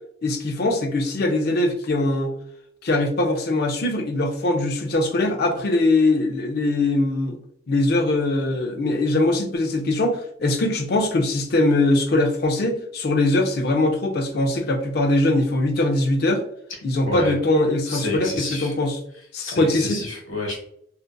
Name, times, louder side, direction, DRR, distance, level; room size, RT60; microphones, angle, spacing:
voice 1, 0.2-2.4 2.8-7.4 7.7-16.4 16.8-19.0 19.3-20.0, left 2 dB, 50° left, 4 dB, 0.4 m, -21 dB
voice 2, 17.1-17.4 17.9-18.7 19.4-20.6, left 2 dB, 80° left, 0 dB, 1.1 m, -29 dB
2.5 x 2.4 x 2.2 m, 0.70 s
head